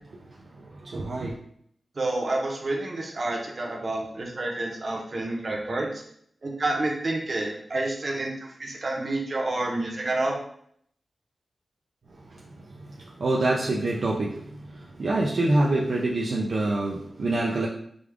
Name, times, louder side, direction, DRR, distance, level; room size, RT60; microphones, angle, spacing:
voice 1, 0.8-1.4 13.2-14.6 15.0-17.7, right 2 dB, 60° right, -2 dB, 0.5 m, -25 dB
voice 2, 2.0-6.0 6.4-8.3 8.6-10.4, right 2 dB, 40° right, -1 dB, 0.9 m, -29 dB
5.0 x 2.4 x 3.5 m, 0.66 s
wide cardioid pair, 160°, 0 cm